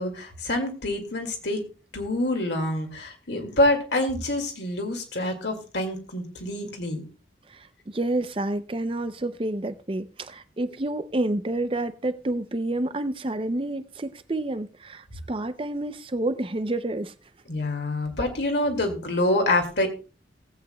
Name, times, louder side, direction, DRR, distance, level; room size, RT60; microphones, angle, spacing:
voice 1, 0.0-1.6 1.9-7.0 17.5-19.9, left 1 dB, 65° left, 2.2 m, -26 dB
voice 2, 7.9-17.1, right 1 dB, 30° right, 0.5 m, -29 dB
19.0 x 8.3 x 2.2 m
head